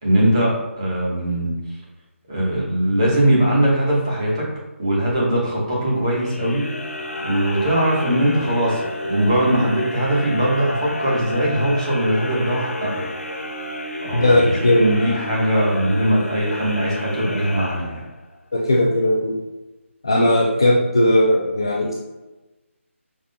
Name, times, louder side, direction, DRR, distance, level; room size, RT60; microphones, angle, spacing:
voice 1, 0.0-1.5 2.3-4.5 4.8-6.6 7.2-13.0 14.0-18.0, right 1 dB, 25° right, -5 dB, 1.2 m, -20 dB
sound 1, 6.1-18.4, left 1 dB, 80° left, 0.8 m, -31 dB
voice 2, 14.1-14.8 18.5-19.4 20.0-21.9, left 1 dB, 20° left, -3 dB, 0.3 m, -17 dB
5.2 x 3.6 x 2.2 m, 1.1 s
figure-of-eight pair, 180°, 7 cm